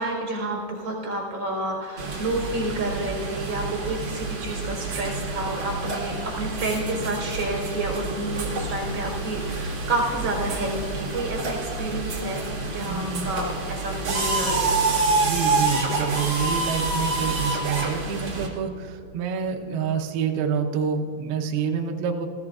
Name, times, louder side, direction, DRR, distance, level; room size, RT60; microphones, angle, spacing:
voice 1, 0.0-15.3, right 2 dB, 25° right, -1 dB, 4.1 m, -30 dB
sound 1, 2.0-18.5, right 3 dB, 55° right, 1.4 m, -28 dB
voice 2, 12.8-13.2 15.2-22.3, right 6 dB, 75° right, 2 dB, 2.4 m, -27 dB
19.5 x 16.0 x 2.4 m, 2.8 s
omnidirectional pair, 5.5 m